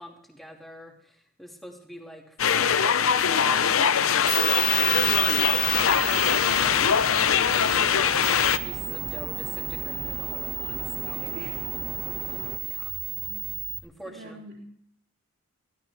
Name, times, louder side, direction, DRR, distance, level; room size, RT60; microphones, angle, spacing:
voice 1, 0.0-4.1 4.6-7.2 7.6-11.3 12.2-12.9 13.8-14.7, equal, ahead, 0 dB, 2.5 m, -45 dB
sound 1, 2.4-8.6, left 7 dB, 65° left, 0.7 m, -22 dB
sound 2, 4.2-13.8, right 9 dB, 80° right, 1.9 m, -33 dB
sound 3, 4.9-12.6, right 1 dB, 30° right, 1.7 m, -40 dB
voice 2, 10.8-11.6 12.6-12.8 13.1-13.5 14.1-14.7, right 2 dB, 50° right, -1 dB, 3.5 m, -45 dB
24.0 x 16.0 x 3.5 m, 0.67 s
head